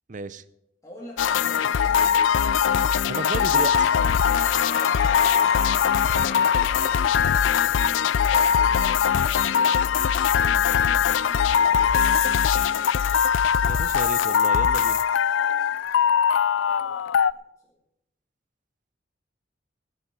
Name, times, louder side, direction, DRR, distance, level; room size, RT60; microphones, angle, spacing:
voice 1, 0.1-0.4 3.1-3.9 13.6-15.0, right 3 dB, 40° right, 16 dB, 0.6 m, -33 dB
voice 2, 0.8-2.2 4.6-9.8 10.1-12.9 15.3-16.2 16.6-17.7, left 1 dB, 15° left, -4 dB, 2.4 m, -47 dB
sound 1, 1.2-17.3, left 8 dB, 85° left, 0.4 m, -21 dB
sound 2, 3.1-12.9, left 5 dB, 55° left, 1.0 m, -35 dB
16.5 x 10.5 x 5.4 m, 0.84 s
head